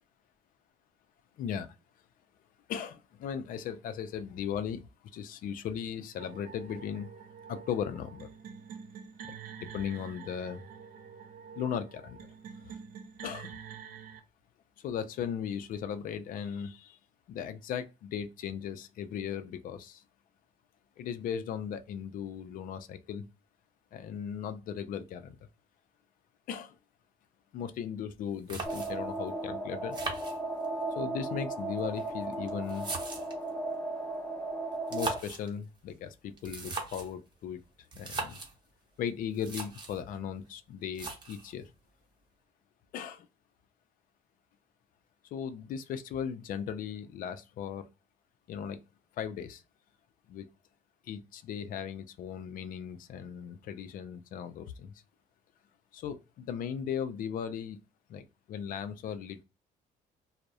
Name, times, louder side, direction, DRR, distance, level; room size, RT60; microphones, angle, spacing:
voice 1, 1.4-1.8 2.7-4.8 5.1-7.1 7.5-8.3 9.2-10.7 11.5-12.2 12.7-12.8 13.2-13.6 14.8-17.0 17.3-20.0 21.0-23.3 23.9-25.4 26.5-26.8 27.5-30.0 31.0-32.9 34.9-37.6 38.0-38.4 39.0-41.7 42.9-43.3 45.3-47.9 48.5-48.8 49.2-49.6 50.3-50.4 51.0-55.0 55.9-57.8 58.1-59.4, left 8 dB, 60° left, 0.4 m, -37 dB
sound 1, 6.2-14.2, right 7 dB, 60° right, 0.5 m, -47 dB
sound 2, 28.1-28.2 28.5-29.2 29.9-30.9 31.8-33.5 34.7-35.5 36.4-37.2 37.9-38.5 39.1-39.2 39.3-40.0 40.9-41.5, right 3 dB, 30° right, 0.7 m, -39 dB
sound 3, 28.7-35.2, right 2 dB, 10° left, 0.5 m, -36 dB
2.3 x 2.0 x 2.6 m
cardioid pair, 110°, 16 cm